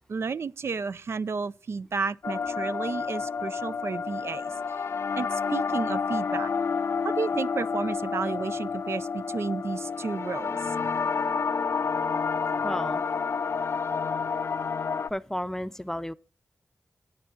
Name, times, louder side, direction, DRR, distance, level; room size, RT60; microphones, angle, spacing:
voice 1, 0.1-4.8 5.1-6.5 7.0-10.8, right 5 dB, 70° right, 0.4 m, -32 dB
sound 1, 2.2-15.1, left 5 dB, 65° left, 0.4 m, -29 dB
voice 2, 12.6-13.0 15.1-16.1, left 1 dB, 10° left, 0.5 m, -32 dB
10.5 x 9.0 x 3.8 m
wide cardioid pair, 70°, 5 cm